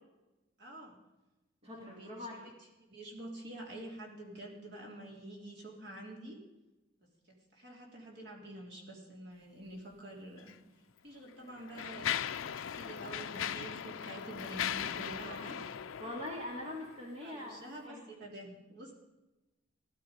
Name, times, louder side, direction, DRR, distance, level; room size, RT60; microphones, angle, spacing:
voice 1, 0.6-1.0 1.8-2.1 2.4-2.5 2.8-6.4 7.3-10.5 11.0-15.6 17.2-18.9, right 1 dB, 55° right, -1 dB, 3.3 m, -48 dB
voice 2, 1.6-2.5 15.2-15.6 16.0-18.1, left 1 dB, 30° right, -2 dB, 2.3 m, -43 dB
Mechanisms, 10.4-10.5 11.3-17.0, left 9 dB, 75° left, 0.5 m, -39 dB
16.0 x 11.5 x 5.2 m, 1.1 s
head